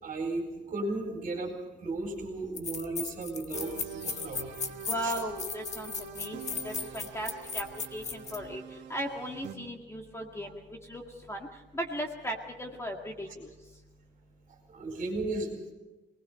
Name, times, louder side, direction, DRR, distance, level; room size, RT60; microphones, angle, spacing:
voice 1, 0.0-1.5 1.8-4.6 5.0-5.1 14.7-15.7, right 2 dB, 40° right, 1 dB, 4.2 m, -35 dB
sound 1, 2.0-2.1 2.6-8.4, left 5 dB, 40° left, 1.5 m, -37 dB
sound 2, 3.5-9.6, right 7 dB, 80° right, 2.2 m, -44 dB
voice 2, 4.9-7.7 7.9-8.6 8.9-11.0 11.3-11.5 11.7-13.5, equal, 15° left, 2 dB, 2.0 m, -37 dB
26.0 x 20.0 x 5.6 m, 1.1 s
cardioid pair, 175°, 19 cm